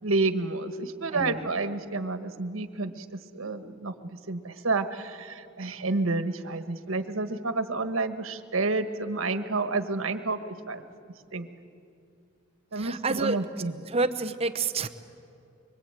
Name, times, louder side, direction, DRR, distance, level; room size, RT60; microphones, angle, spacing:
voice 1, 0.0-3.0 3.3-3.9 4.3-10.8 11.3-11.5 12.7-13.9, right 3 dB, 80° right, 9 dB, 1.4 m, -29 dB
voice 2, 1.1-1.5 12.7-13.4 13.9-14.9, right 3 dB, 30° right, 10 dB, 0.8 m, -29 dB
24.5 x 24.0 x 9.0 m, 2.5 s
head